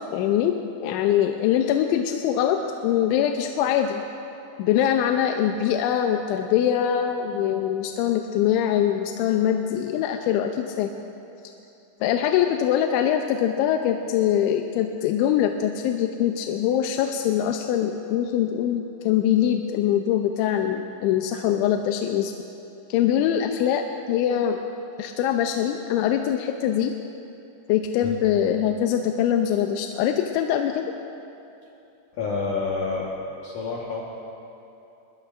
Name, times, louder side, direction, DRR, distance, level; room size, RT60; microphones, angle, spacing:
voice 1, 0.1-4.0 4.6-10.9 12.0-22.3 22.9-24.6 25.0-26.9 27.7-30.9, left 10 dB, 85° left, 4 dB, 2.9 m, -23 dB
voice 2, 32.1-33.1 33.4-34.0, left 4 dB, 65° left, -4 dB, 2.1 m, -28 dB
23.5 x 21.0 x 2.5 m, 2.8 s
omnidirectional pair, 5.3 m